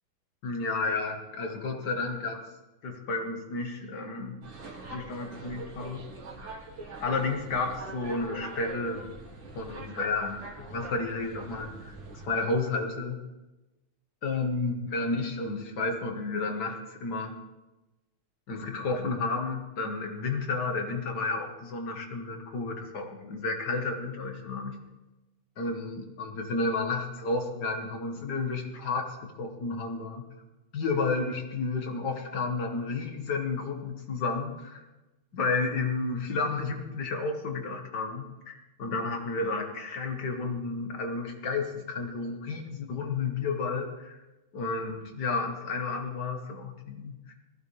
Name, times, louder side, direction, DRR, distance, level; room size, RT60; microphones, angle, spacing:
voice 1, 0.4-2.5 2.8-4.4 4.9-6.1 7.0-9.1 9.5-13.2 14.2-17.4 18.5-24.8 25.6-30.2 30.7-34.8 35.3-44.2 44.5-47.3, left 3 dB, 55° left, 3 dB, 2.1 m, -31 dB
sound 1, 4.4-12.3, right 3 dB, 65° right, 2.5 m, -43 dB
19.0 x 15.0 x 3.4 m, 1.0 s
omnidirectional pair, 2.3 m